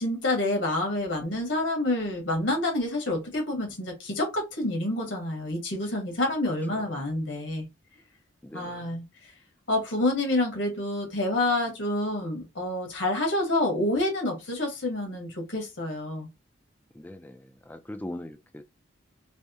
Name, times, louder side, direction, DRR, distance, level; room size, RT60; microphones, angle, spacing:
voice 1, 0.0-7.6 8.5-9.0 9.7-16.3, left 1 dB, 75° left, 1.6 m, -28 dB
voice 2, 8.4-9.0 16.9-18.6, left 1 dB, 10° left, 0.4 m, -41 dB
3.4 x 3.1 x 2.8 m
head